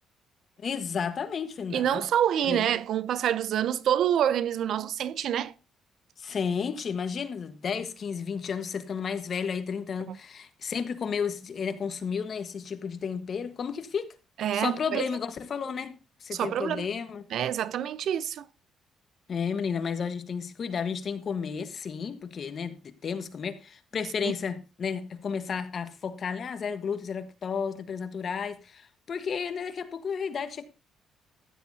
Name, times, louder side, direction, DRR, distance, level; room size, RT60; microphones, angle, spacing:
voice 1, 0.6-2.0 2.5-2.7 6.2-14.1 14.5-17.2 19.3-30.6, left 6 dB, 45° left, 1.3 m, -32 dB
voice 2, 1.7-5.5 10.1-10.2 14.4-15.1 16.3-16.9 17.3-18.5 24.2-24.3, right 10 dB, 65° right, 0.6 m, -27 dB
15.0 x 11.0 x 2.8 m
cardioid pair, 120°, 0 cm